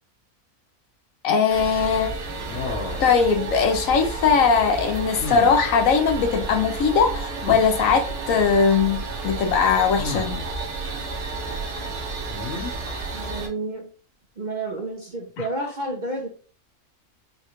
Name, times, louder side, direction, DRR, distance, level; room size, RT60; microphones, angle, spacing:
voice 1, 1.2-2.1 3.0-10.4, left 6 dB, 70° left, 0.9 m, -20 dB
sound 1, 1.5-13.5, right 3 dB, 85° right, 1.5 m, -31 dB
sound 2, 2.5-3.1 5.2-5.6 7.4-7.6 10.0-10.5 12.3-12.7, left 3 dB, 55° left, 1.3 m, -31 dB
voice 2, 13.1-13.9 14.4-16.3, right 2 dB, 45° right, 0.6 m, -30 dB
5.6 x 2.4 x 3.0 m
omnidirectional pair, 1.6 m